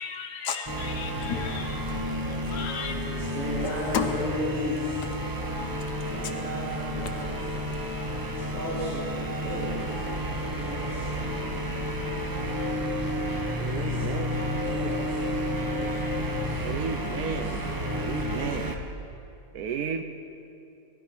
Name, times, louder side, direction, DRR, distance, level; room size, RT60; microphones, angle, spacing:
voice 1, 0.0-1.8 2.5-2.9 3.9-4.1 7.0-7.3, left 7 dB, 80° left, 5 dB, 1.5 m, -33 dB
sound 1, 0.7-18.8, equal, 15° right, 0.9 m, -31 dB
voice 2, 2.8-5.0 6.1-7.3 8.4-10.2 10.5-11.1 13.6-16.1 16.4-17.7, equal, 55° right, -13 dB, 5.5 m, -37 dB
voice 3, 13.6-14.3 16.6-17.6 17.9-18.8 19.5-20.0, right 7 dB, 70° right, 8 dB, 1.1 m, -33 dB
19.0 x 12.5 x 5.3 m, 2.7 s
omnidirectional pair, 1.8 m